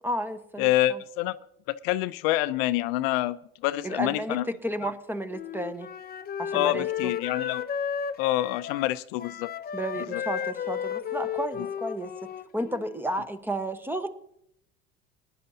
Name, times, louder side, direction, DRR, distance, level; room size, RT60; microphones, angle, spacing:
voice 1, 0.0-1.0 3.8-5.9 6.4-7.1 9.7-14.1, right 1 dB, 5° right, 11 dB, 1.1 m, -32 dB
voice 2, 0.6-1.4 1.7-3.4 3.6-4.4 6.5-7.6 8.2-9.5 10.1-10.2, left 15 dB, 70° left, 14 dB, 0.5 m, -26 dB
Wind instrument woodwind instrument, 5.3-13.1, left 8 dB, 30° left, 0.6 m, -33 dB
19.5 x 10.5 x 2.8 m, 0.72 s
hypercardioid pair, 80°, 30 cm